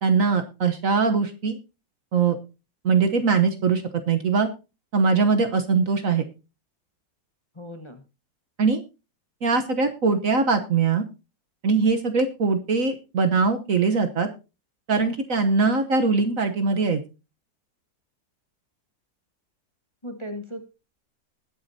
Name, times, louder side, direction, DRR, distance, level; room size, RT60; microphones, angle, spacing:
voice 1, 0.0-1.6 2.1-2.4 2.8-4.5 4.9-6.2 8.6-8.8 9.4-11.0 11.6-14.3 14.9-17.0, right 4 dB, 50° right, 7 dB, 1.3 m, -21 dB
voice 2, 7.5-8.1 20.0-20.6, equal, 20° left, 6 dB, 1.2 m, -37 dB
20.5 x 8.4 x 2.7 m, 0.30 s
omnidirectional pair, 1.9 m